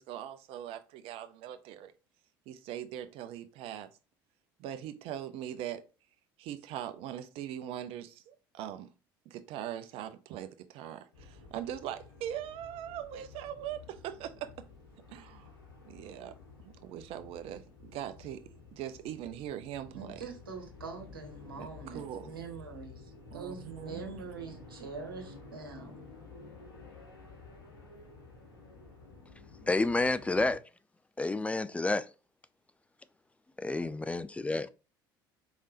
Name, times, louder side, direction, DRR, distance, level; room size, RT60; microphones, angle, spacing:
voice 1, 0.0-1.9 2.5-3.9 4.6-5.8 6.4-8.9 9.3-14.5 15.1-15.5 15.9-16.3 16.6-20.2 21.6-22.3 23.3-24.0, right 11 dB, 55° right, 0.7 m, -41 dB
sound 1, 11.1-30.6, left 4 dB, 85° left, 1.1 m, -52 dB
voice 2, 19.9-26.0, right 5 dB, 85° right, 1.2 m, -44 dB
voice 3, 29.7-30.6 31.2-32.1 33.6-34.7, left 2 dB, 10° left, 0.3 m, -29 dB
4.8 x 3.7 x 2.6 m
hypercardioid pair, 65°, 12 cm